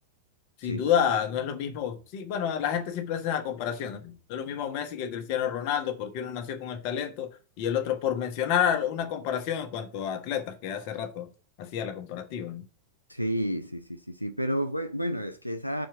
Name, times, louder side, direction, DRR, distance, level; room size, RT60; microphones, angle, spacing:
voice 1, 0.6-7.3 7.6-11.3 11.6-12.6, left 9 dB, 45° left, 1.3 m, -29 dB
voice 2, 13.1-15.9, equal, 90° left, 0.5 m, -31 dB
6.3 x 4.5 x 6.6 m
figure-of-eight pair, 90°, 0 cm